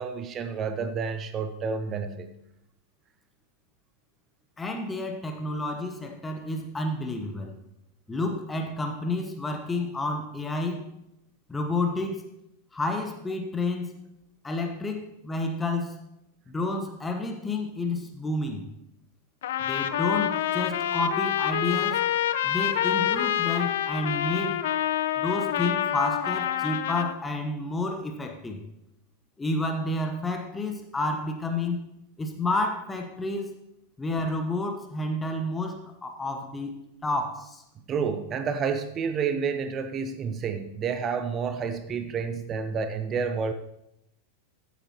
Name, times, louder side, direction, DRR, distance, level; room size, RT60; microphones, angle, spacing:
voice 1, 0.0-2.3 37.9-43.5, right 6 dB, 30° right, 10 dB, 0.7 m, -29 dB
voice 2, 4.6-7.6 8.1-10.9 11.5-12.2 12.7-14.0 14.4-16.0 16.5-18.7 19.6-22.0 22.4-24.6 25.2-28.6 29.4-31.9 32.2-33.5 34.0-37.6, left 2 dB, 10° left, 4 dB, 1.0 m, -30 dB
Trumpet, 19.4-27.2, left 11 dB, 55° left, 0.5 m, -27 dB
14.5 x 8.4 x 2.9 m, 0.82 s
figure-of-eight pair, 90°, 0 cm